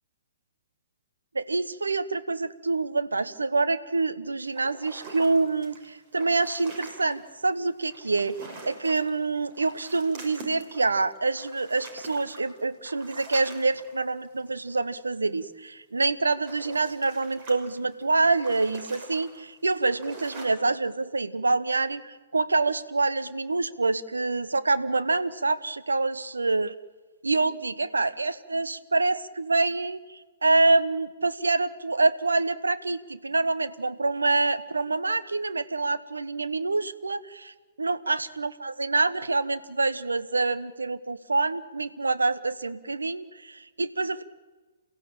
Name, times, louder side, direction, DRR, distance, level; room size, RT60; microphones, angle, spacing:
voice 1, 1.3-26.7 27.2-44.2, right 3 dB, 80° right, 13 dB, 1.1 m, -26 dB
sound 1, 4.6-7.3 7.8-9.2 9.4-14.5 16.1-20.5, right 2 dB, 40° right, 5.7 m, -45 dB
28.5 x 16.0 x 8.9 m, 1.3 s
figure-of-eight pair, 115°, 0 cm